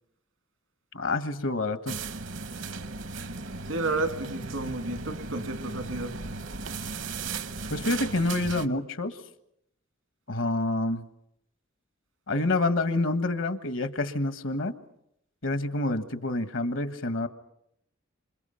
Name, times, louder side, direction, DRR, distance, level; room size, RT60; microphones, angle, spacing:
voice 1, 0.9-2.0 7.7-9.1 10.3-11.1 12.3-14.7 15.4-17.3, left 2 dB, 75° left, 1.5 m, -27 dB
sound 1, 1.9-8.7, right 4 dB, 65° right, 0.9 m, -36 dB
voice 2, 3.7-6.2, right 2 dB, 85° right, 2.5 m, -31 dB
27.5 x 26.5 x 5.7 m
head